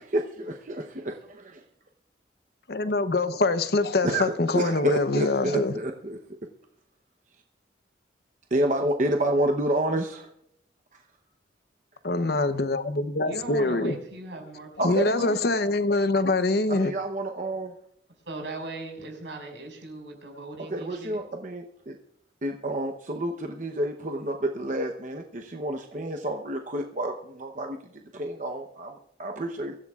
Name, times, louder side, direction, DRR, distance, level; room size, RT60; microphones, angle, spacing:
voice 1, 0.0-1.6 4.0-6.2 8.5-10.3 14.8-15.4 16.7-17.7 20.7-22.0 22.4-27.8 28.1-29.8, right 1 dB, 45° right, 0.9 m, -29 dB
voice 2, 2.7-5.8 12.0-13.9 14.8-16.9, left 2 dB, 60° left, 0.8 m, -24 dB
voice 3, 13.3-15.5 18.2-21.2, right 2 dB, 90° right, 5.6 m, -39 dB
24.0 x 14.5 x 2.4 m
head